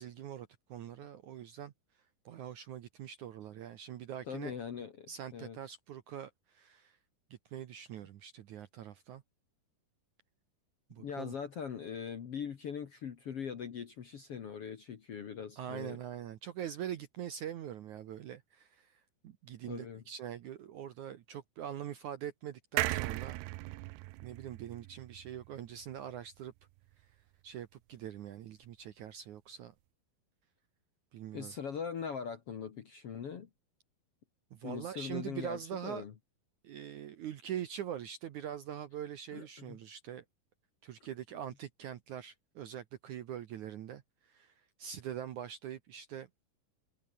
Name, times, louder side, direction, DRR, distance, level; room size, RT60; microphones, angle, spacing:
voice 1, 0.0-1.7 2.3-4.5 5.1-7.0 7.3-9.2 10.9-11.3 15.6-23.4 24.2-26.5 27.4-29.7 31.1-31.5 34.5-36.0 36.6-40.2 40.8-46.3, right 10 dB, 65° right, 2.0 m, -43 dB
voice 2, 4.2-5.6 11.0-16.0 19.7-20.0 31.3-33.5 34.6-36.1 39.3-39.8, left 7 dB, 55° left, 1.8 m, -41 dB
sound 1, 22.8-26.2 26.6-26.7 26.9-27.0, right 19 dB, 85° right, 2.8 m, -37 dB
omnidirectional pair, 4.7 m